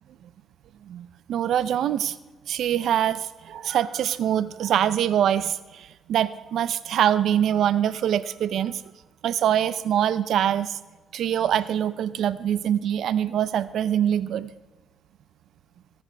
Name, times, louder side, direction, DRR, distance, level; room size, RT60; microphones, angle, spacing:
voice 1, 0.8-2.2 2.5-8.8 9.2-10.8 11.1-14.5, right 10 dB, 75° right, 15 dB, 0.5 m, -24 dB
16.0 x 9.8 x 3.4 m, 1.2 s
cardioid pair, 90°, 0 cm